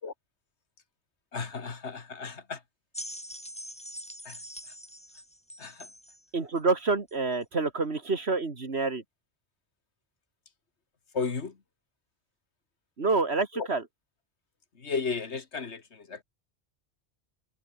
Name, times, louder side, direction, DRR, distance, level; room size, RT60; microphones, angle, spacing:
voice 1, 1.3-2.6 4.2-4.8 5.6-5.9 11.1-11.6 13.5-13.7 14.7-16.2, left 5 dB, 90° left, 2.2 m, -34 dB
sound 1, 2.9-6.2 7.1-7.2, equal, 5° left, 5.7 m, -43 dB
voice 2, 6.3-9.0 13.0-13.8, right 3 dB, 70° right, 2.5 m, -27 dB
omnidirectional pair, 1.1 m